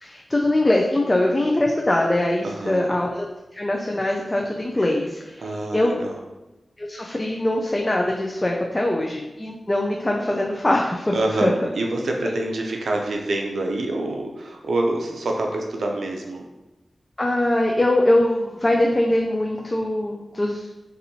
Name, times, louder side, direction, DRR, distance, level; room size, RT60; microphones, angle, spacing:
voice 1, 0.0-3.3 3.5-6.0 6.8-11.1 11.4-11.5 17.2-20.7, left 1 dB, 25° left, -1 dB, 0.4 m, -22 dB
voice 2, 2.4-3.0 5.4-6.2 11.1-16.4, right 2 dB, 85° right, 1 dB, 0.4 m, -26 dB
4.2 x 2.6 x 2.7 m, 1.0 s
cardioid pair, 65°, 0 cm